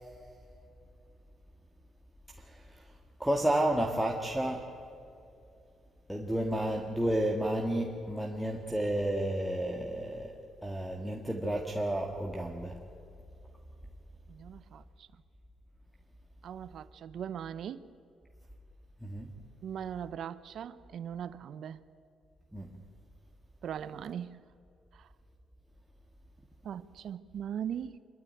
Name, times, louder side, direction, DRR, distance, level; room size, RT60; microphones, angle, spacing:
voice 1, 3.2-4.7 6.1-10.3 10.6-12.8 19.0-19.3 22.5-22.7, right 1 dB, 5° right, 1.7 m, -31 dB
voice 2, 14.3-15.1 16.4-17.9 19.6-21.8 23.6-24.4 24.9-25.1 26.6-28.0, right 9 dB, 65° right, 0.8 m, -40 dB
26.0 x 12.5 x 9.2 m
cardioid pair, 90°, 0 cm